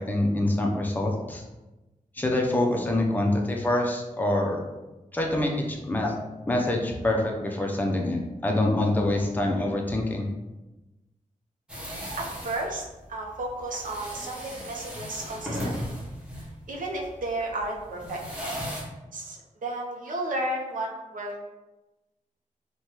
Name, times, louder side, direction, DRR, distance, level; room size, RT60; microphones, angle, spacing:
voice 1, 0.0-1.4 2.2-4.6 5.1-6.1 6.5-10.3, left 1 dB, 15° left, 0 dB, 0.4 m, -25 dB
sound 1, 11.7-18.8, equal, 5° right, 0.8 m, -36 dB
voice 2, 12.2-12.8 13.1-15.9 16.7-18.2 19.1-21.4, right 1 dB, 80° right, -1 dB, 0.6 m, -33 dB
3.2 x 2.2 x 2.8 m, 1.1 s
wide cardioid pair, 120°, 14 cm